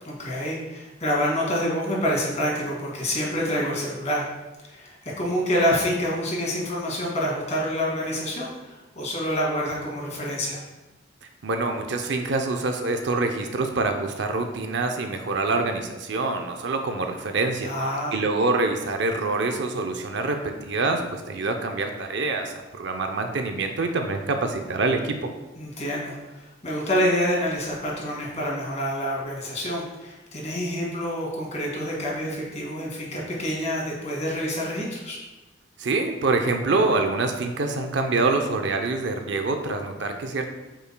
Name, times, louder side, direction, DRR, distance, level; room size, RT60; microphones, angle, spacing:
voice 1, 0.1-4.2 4.6-10.6 17.6-18.2 25.6-35.2, equal, 40° left, -4 dB, 2.2 m, -27 dB
voice 2, 11.4-17.7 18.1-25.3 35.8-40.5, right 3 dB, 65° right, 5 dB, 0.6 m, -25 dB
8.7 x 5.6 x 2.2 m, 1.1 s
head